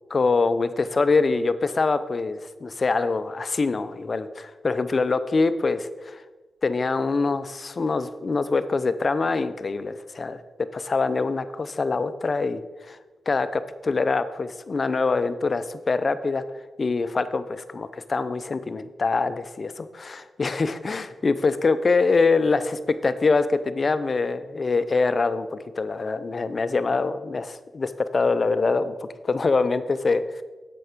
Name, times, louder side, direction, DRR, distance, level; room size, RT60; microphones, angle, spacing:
voice 1, 0.1-6.2 6.6-10.4 10.7-13.0 13.3-16.4 16.8-30.4, left 4 dB, 50° left, 13 dB, 0.6 m, -24 dB
7.8 x 6.1 x 5.1 m, 1.2 s
cardioid pair, 50°, 0 cm